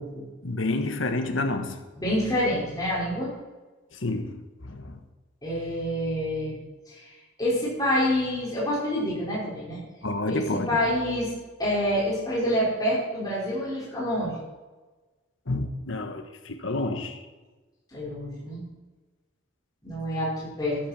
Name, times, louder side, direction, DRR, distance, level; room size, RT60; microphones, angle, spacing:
voice 1, 0.4-1.8 3.9-5.0 10.0-10.8 15.5-17.2, left 2 dB, 80° left, 1.5 m, -29 dB
voice 2, 2.0-3.3 5.4-6.6 6.9-7.0 7.4-9.8 10.3-10.4 10.7-11.3 11.6-14.4 17.9-18.6 19.8-20.8, equal, 20° left, 5.0 m, -27 dB
13.5 x 12.5 x 4.4 m
head